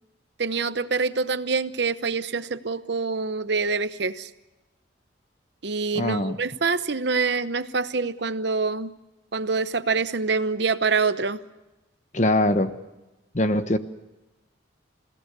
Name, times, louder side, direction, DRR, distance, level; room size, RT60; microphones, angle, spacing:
voice 1, 0.4-4.3 5.6-8.9 9.3-11.4, right 4 dB, 60° right, 13 dB, 0.9 m, -25 dB
voice 2, 6.0-6.4 12.1-12.7 13.3-13.8, left 1 dB, 35° left, 10 dB, 1.2 m, -22 dB
28.5 x 17.0 x 6.9 m, 1.0 s
head